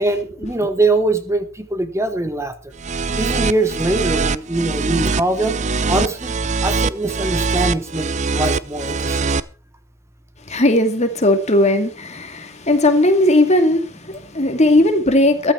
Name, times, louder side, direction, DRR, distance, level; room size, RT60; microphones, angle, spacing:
voice 1, 0.0-2.5 3.2-5.6 5.9-6.3 6.6-9.2, right 2 dB, 15° right, 1.2 m, -22 dB
sound 1, 2.8-9.4, right 4 dB, 35° right, 0.6 m, -22 dB
voice 2, 10.5-15.5, left 1 dB, 30° left, 2.3 m, -17 dB
14.5 x 12.5 x 4.6 m
head